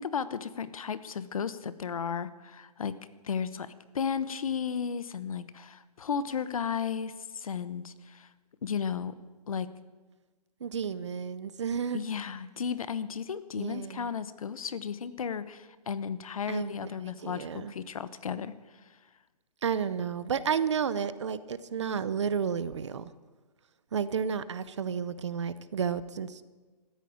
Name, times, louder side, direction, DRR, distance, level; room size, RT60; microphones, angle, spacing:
voice 1, 0.0-3.0 3.2-8.3 8.6-9.2 9.5-9.7 11.9-18.5, left 7 dB, 60° left, 15 dB, 1.0 m, -34 dB
voice 2, 10.6-12.0 13.6-14.1 16.5-16.7 17.1-17.7 19.6-23.1 23.9-26.4, right 7 dB, 45° right, 16 dB, 0.7 m, -32 dB
14.0 x 10.0 x 8.5 m, 1.3 s
hypercardioid pair, 170°, 21 cm